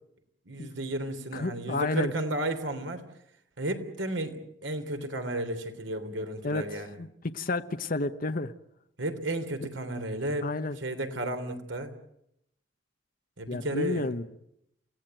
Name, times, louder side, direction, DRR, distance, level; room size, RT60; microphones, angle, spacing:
voice 1, 0.4-3.1 3.6-6.9 9.0-10.5 10.8-11.9 13.4-14.1, right 1 dB, 90° right, 7 dB, 3.4 m, -33 dB
voice 2, 1.3-2.1 6.4-8.5 10.4-10.8 13.5-14.2, left 2 dB, 50° left, 8 dB, 1.0 m, -31 dB
29.0 x 17.5 x 9.1 m, 0.78 s
head